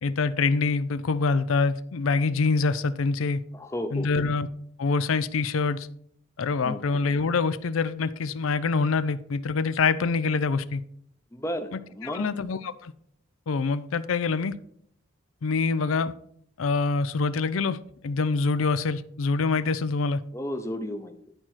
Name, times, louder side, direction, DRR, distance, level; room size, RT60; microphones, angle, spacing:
voice 1, 0.0-3.4 3.9-4.5 4.8-5.9 6.4-10.8 11.7-12.9 13.5-14.6 15.4-16.1 16.6-20.2, left 4 dB, 90° left, 0.5 m, -25 dB
voice 2, 3.5-4.2 6.6-6.8 11.3-12.3 20.3-21.3, left 1 dB, 15° left, 0.7 m, -33 dB
11.0 x 4.4 x 4.5 m
head